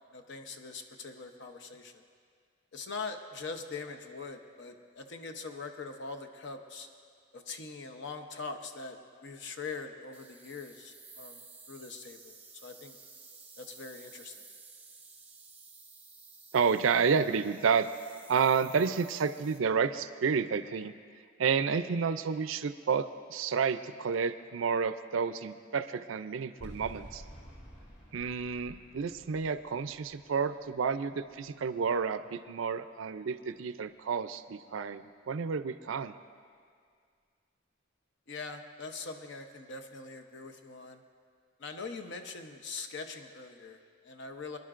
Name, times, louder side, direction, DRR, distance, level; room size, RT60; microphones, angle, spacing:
voice 1, 0.1-2.0 2.7-6.9 7.3-11.4 11.7-12.4 12.6-13.0 13.6-14.4 38.3-41.0 41.6-44.6, left 4 dB, 65° left, 6 dB, 0.8 m, -42 dB
sound 1, 10.1-19.6, right 4 dB, 10° right, 0.8 m, -54 dB
voice 2, 16.5-17.9 18.3-20.9 21.4-27.2 28.1-36.1, right 6 dB, 75° right, 12 dB, 0.4 m, -30 dB
sound 2, 26.6-31.8, equal, 35° left, 2.4 m, -51 dB
24.5 x 11.0 x 2.5 m, 2.1 s
head